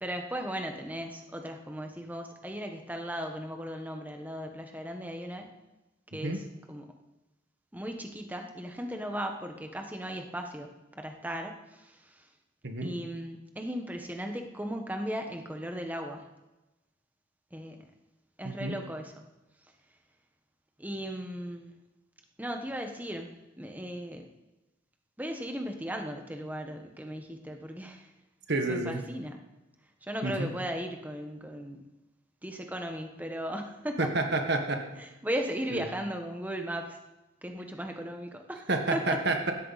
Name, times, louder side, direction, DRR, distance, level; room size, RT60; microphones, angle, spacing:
voice 1, 0.0-5.5 6.1-6.8 7.7-12.2 12.8-16.3 17.5-17.8 18.4-19.2 20.8-21.7 22.4-24.3 25.2-28.1 28.6-29.4 30.0-31.8 32.4-34.1 35.0-37.0 37.4-38.7 38.9-39.2, equal, 10° right, 4 dB, 1.3 m, -37 dB
voice 2, 12.6-12.9 18.4-18.8 28.5-29.0 30.2-30.5 34.0-34.8 35.7-35.8 38.7-39.5, right 2 dB, 55° right, 4 dB, 1.5 m, -29 dB
16.5 x 13.0 x 4.2 m, 1.0 s
head